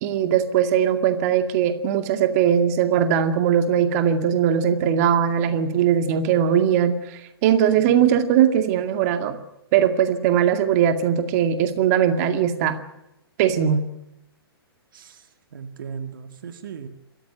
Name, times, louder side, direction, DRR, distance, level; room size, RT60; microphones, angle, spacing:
voice 1, 0.0-9.4 9.7-12.8 13.4-13.9, right 9 dB, 40° right, 8 dB, 2.2 m, -20 dB
voice 2, 7.8-8.2 14.9-15.3 15.5-16.9, right 6 dB, 55° right, 8 dB, 2.1 m, -37 dB
27.5 x 14.0 x 9.2 m, 0.86 s
figure-of-eight pair, 120°, 13 cm